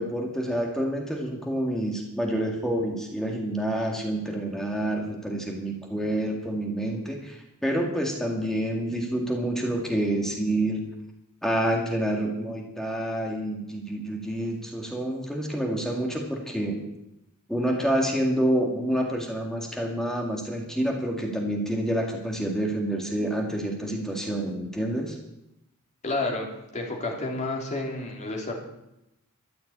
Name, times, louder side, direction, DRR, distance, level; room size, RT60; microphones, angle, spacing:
voice 1, 0.0-10.8 11.4-16.8 17.5-25.2, right 1 dB, ahead, 0 dB, 2.1 m, -28 dB
voice 2, 26.0-26.5 26.7-28.5, left 2 dB, 35° left, -1 dB, 3.4 m, -30 dB
13.5 x 8.4 x 8.7 m, 0.87 s
head